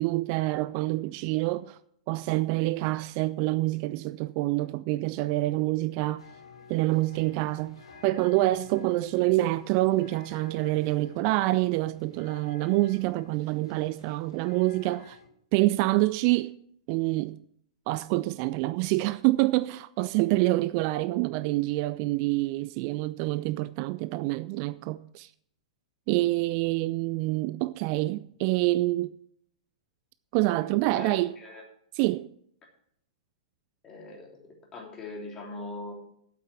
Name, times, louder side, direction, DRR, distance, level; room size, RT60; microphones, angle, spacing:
voice 1, 0.0-1.8 2.1-6.2 6.7-15.2 15.5-16.5 16.9-17.4 17.9-25.3 26.1-29.1 30.3-31.4 31.9-32.3, right 19 dB, 40° right, 0.4 m, -26 dB
sound 1, 6.2-15.3, left 4 dB, 65° left, 3.0 m, -52 dB
voice 2, 30.9-31.6 33.8-34.4 34.7-35.9, left 2 dB, 20° left, 3.3 m, -40 dB
8.4 x 8.4 x 7.4 m
figure-of-eight pair, 105°, 3 cm